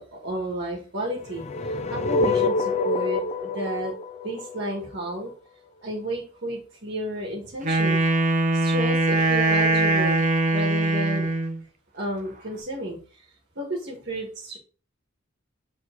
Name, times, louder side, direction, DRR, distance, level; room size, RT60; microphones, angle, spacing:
voice 1, 0.0-3.9 4.2-5.3 5.8-8.0 8.5-11.3 11.9-13.2 13.6-14.6, right 1 dB, 60° right, -2 dB, 1.8 m, -32 dB
sound 1, 1.2-5.3, left 3 dB, 35° left, 0.5 m, -26 dB
Wind instrument woodwind instrument, 7.6-11.6, right 2 dB, 40° right, 0.9 m, -22 dB
7.2 x 3.8 x 3.9 m, 0.38 s
head